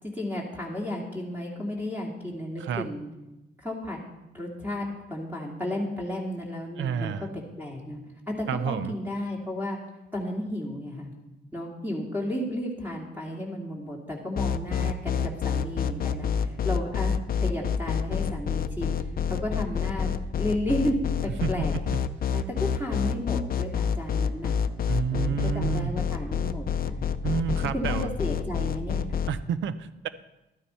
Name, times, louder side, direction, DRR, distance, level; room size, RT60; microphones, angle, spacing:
voice 1, 0.0-3.1 3.6-4.0 4.3-7.3 7.6-8.0 8.3-9.8 10.1-11.1 11.5-19.0 19.3-20.1 20.4-21.7 22.3-24.5 25.1-27.1 27.7-29.0, left 1 dB, 10° right, -2 dB, 2.6 m, -33 dB
voice 2, 6.8-7.3 8.5-8.9 21.4-21.8 24.9-25.9 27.2-28.1 29.3-30.1, right 8 dB, 75° right, 14 dB, 0.7 m, -29 dB
sound 1, 14.4-29.3, left 7 dB, 50° left, 0.6 m, -27 dB
13.0 x 9.6 x 4.4 m, 0.97 s
cardioid pair, 90°, 20 cm